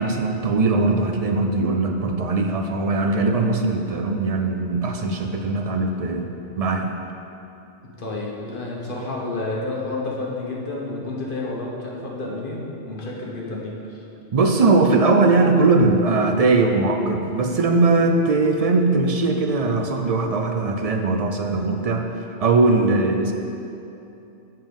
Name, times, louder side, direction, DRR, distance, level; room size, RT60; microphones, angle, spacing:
voice 1, 0.0-6.3 6.6-6.9 14.3-23.3, right 3 dB, 55° right, 4 dB, 0.4 m, -20 dB
voice 2, 8.0-14.0, left 2 dB, 50° left, -3 dB, 1.4 m, -30 dB
7.3 x 5.3 x 5.2 m, 2.8 s
omnidirectional pair, 1.2 m